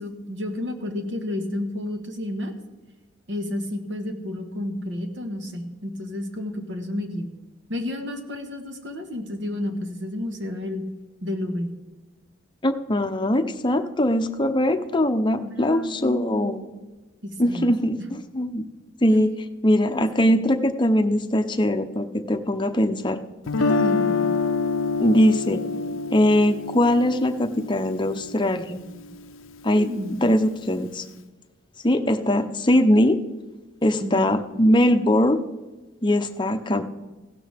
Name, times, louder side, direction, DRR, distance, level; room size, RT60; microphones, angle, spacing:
voice 1, 0.0-2.5 3.3-7.3 7.7-10.8 11.2-11.8 15.4-16.7 17.2-17.7 19.8-20.4 23.6-24.3 29.7-30.2 34.0-34.3, left 1 dB, 65° right, 5 dB, 1.5 m, -31 dB
voice 2, 12.6-16.6 17.4-18.6 19.0-19.3 19.6-23.2 25.0-25.6 26.1-28.8 29.6-31.0 31.8-33.2 33.8-35.4 36.0-36.8, left 1 dB, 25° left, 7 dB, 0.7 m, -21 dB
Guitar, 23.5-29.5, left 4 dB, 85° left, 0.5 m, -27 dB
16.0 x 12.0 x 3.5 m, 1.2 s
head